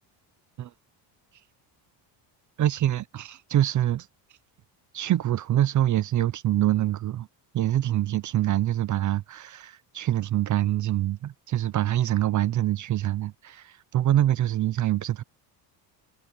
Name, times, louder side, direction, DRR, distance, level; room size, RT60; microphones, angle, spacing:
voice 1, 2.6-4.1 4.9-7.3 7.5-15.2, right 13 dB, 40° right, 0.7 m, -25 dB
cardioid pair, 130°, 46 cm